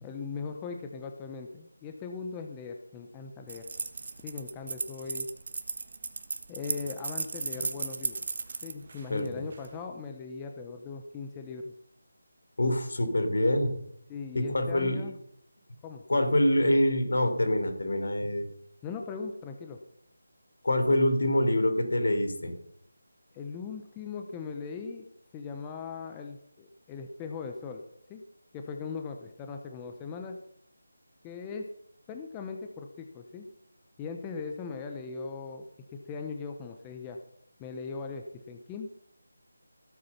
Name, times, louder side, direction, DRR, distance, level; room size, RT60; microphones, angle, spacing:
voice 1, 0.0-3.7 4.2-5.3 6.5-8.2 8.6-11.7 14.1-15.1 15.8-16.0 18.8-19.8 23.3-25.1 25.3-27.8 28.1-28.2 28.5-30.4 31.2-31.7 32.1-33.5 34.0-37.2 37.6-38.9, left 5 dB, 10° left, 4 dB, 0.8 m, -39 dB
sound 1, 3.5-9.7, right 4 dB, 40° right, 1.3 m, -36 dB
voice 2, 9.1-9.4 12.6-13.8 14.4-15.0 16.1-18.5 20.6-22.5, left 1 dB, 70° left, 7 dB, 3.5 m, -25 dB
17.0 x 8.4 x 5.9 m, 0.71 s
figure-of-eight pair, 170°, 0 cm